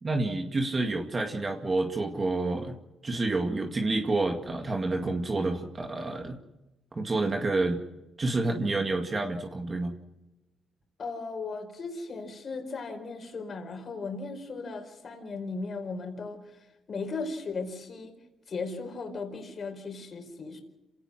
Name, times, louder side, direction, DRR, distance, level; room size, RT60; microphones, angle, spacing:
voice 1, 0.0-2.8 3.0-6.4 6.9-7.8 8.2-9.9, right 2 dB, 30° right, 3 dB, 2.1 m, -29 dB
voice 2, 11.0-18.1 18.5-20.6, left 4 dB, 45° left, 3 dB, 4.5 m, -37 dB
27.5 x 17.5 x 6.4 m, 0.96 s
cardioid pair, 90°, 0 cm